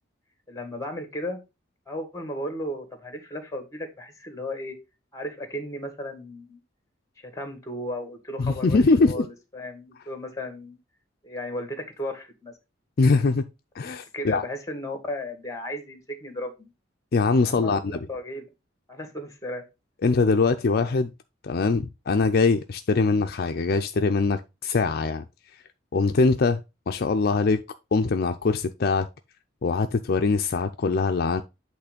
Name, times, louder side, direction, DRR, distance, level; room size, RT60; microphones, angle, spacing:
voice 1, 0.5-1.4 1.9-4.8 5.1-6.6 7.2-8.8 9.1-10.8 11.2-12.5 14.1-16.7 17.4-18.5 18.9-19.6, left 1 dB, 15° left, 1.7 m, -35 dB
voice 2, 8.4-9.3 13.0-13.4 13.8-14.4 17.1-18.0 20.0-21.1 21.4-25.2 25.9-27.6 27.9-29.1 29.6-31.4, left 4 dB, 55° left, 0.5 m, -22 dB
8.3 x 3.2 x 5.0 m
head